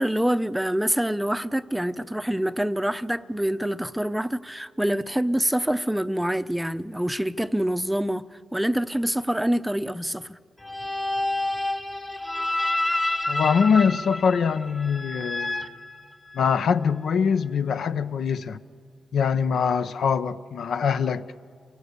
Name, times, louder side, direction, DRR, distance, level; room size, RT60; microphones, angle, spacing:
voice 1, 0.0-10.4, right 1 dB, 5° right, 0.6 m, -26 dB
sound 1, 10.6-16.6, left 2 dB, 25° left, 1.1 m, -29 dB
voice 2, 13.3-15.8 16.3-18.6 19.1-21.3, left 6 dB, 75° left, 0.7 m, -23 dB
27.5 x 18.5 x 8.1 m
cardioid pair, 70°, 0 cm